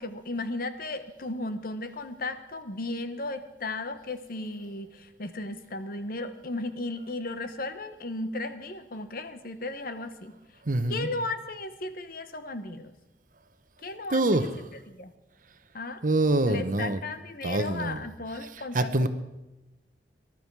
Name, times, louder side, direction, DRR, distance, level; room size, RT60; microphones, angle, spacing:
voice 1, 0.0-10.4 10.9-12.9 13.8-14.2 14.9-15.1 15.7-16.0 16.5-19.1, left 2 dB, 55° left, 10 dB, 1.1 m, -35 dB
voice 2, 10.6-11.1 14.1-14.5 16.0-17.0 17.4-18.0 18.7-19.1, right 2 dB, 50° right, 10 dB, 0.9 m, -25 dB
19.5 x 12.0 x 4.7 m, 1.0 s
head